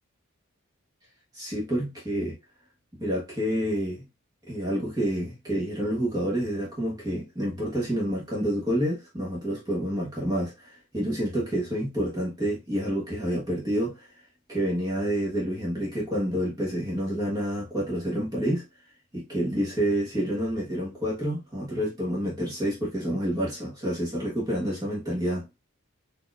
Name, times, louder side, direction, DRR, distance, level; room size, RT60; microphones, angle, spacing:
voice 1, 1.3-2.4 3.0-4.0 4.5-14.1 14.5-18.6 19.1-25.5, equal, 20° right, 1.2 m, -28 dB
4.3 x 2.8 x 2.4 m
head